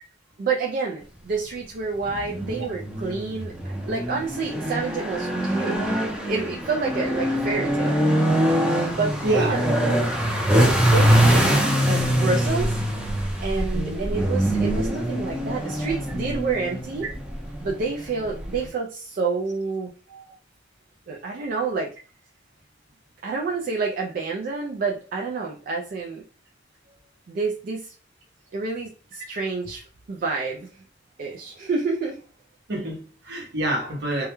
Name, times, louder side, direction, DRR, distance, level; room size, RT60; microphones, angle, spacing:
voice 1, 0.4-3.5 3.9-5.8 6.3-8.0 8.9-9.7 10.8-11.6 11.9-12.8 13.4-17.1 17.6-19.9 21.1-21.9 23.2-26.2 27.3-27.9 28.5-29.8 30.1-30.7 31.2-32.2, right 4 dB, 50° right, 0.3 m, -28 dB
sound 1, 2.0-18.7, equal, 5° right, 0.6 m, -23 dB
voice 2, 9.2-10.1 13.7-14.0 15.4-15.5 20.1-20.3 32.7-34.3, right 2 dB, 65° right, 0.8 m, -27 dB
2.3 x 2.1 x 2.9 m
head